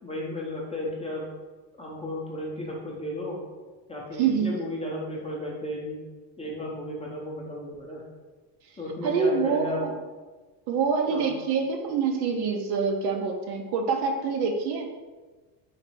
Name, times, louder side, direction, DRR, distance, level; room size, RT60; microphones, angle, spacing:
voice 1, 0.0-1.2 1.7-3.4 3.9-6.0 6.4-8.0 8.8-9.8 11.1-11.3, left 1 dB, 15° left, -3 dB, 0.6 m, -34 dB
voice 2, 4.2-4.5 8.6-9.9 10.7-14.9, right 5 dB, 55° right, 3 dB, 0.6 m, -26 dB
4.0 x 2.6 x 4.4 m, 1.3 s
cardioid pair, 150°, 49 cm